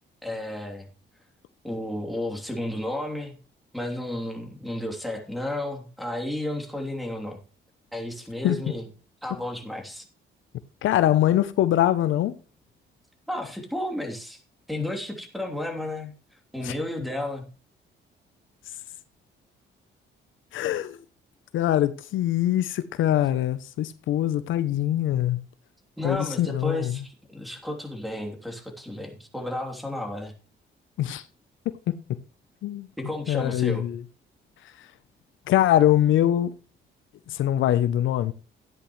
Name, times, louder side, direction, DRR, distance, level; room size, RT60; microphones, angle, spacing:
voice 1, 0.2-0.9 1.6-3.3 3.7-7.4 7.9-8.9 9.2-10.0 13.3-14.4 14.7-16.1 16.5-17.4 26.0-30.3 33.0-33.9, left 1 dB, ahead, 3.0 m, -32 dB
voice 2, 10.8-12.3 16.6-16.8 20.5-21.0 21.5-25.4 26.0-27.0 31.0-31.2 31.9-32.0 32.6-32.9 33.3-34.0 35.5-36.5 37.3-38.3, left 12 dB, 75° left, 0.7 m, -23 dB
13.5 x 10.0 x 3.2 m
cardioid pair, 90°, 20 cm